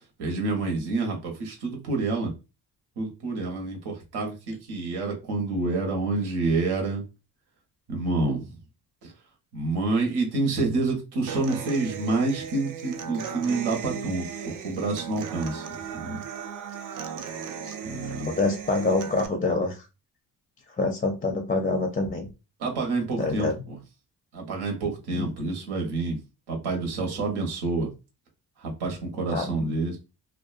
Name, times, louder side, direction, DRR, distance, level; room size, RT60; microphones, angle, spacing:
voice 1, 0.2-2.3 3.0-7.0 7.9-8.5 9.0-9.1 9.5-14.3 14.6-15.6 15.9-16.2 17.8-18.3 22.6-23.8 24.3-26.2 26.5-27.9 28.6-30.0, right 3 dB, 85° right, 1.0 m, -28 dB
Human voice / Acoustic guitar, 11.3-19.3, right 7 dB, 55° right, 0.5 m, -36 dB
voice 2, 18.1-19.8 20.8-22.3 23.2-23.6 25.1-25.3 29.3-29.7, left 3 dB, 20° left, 0.4 m, -26 dB
2.4 x 2.2 x 2.4 m
cardioid pair, 95°, 38 cm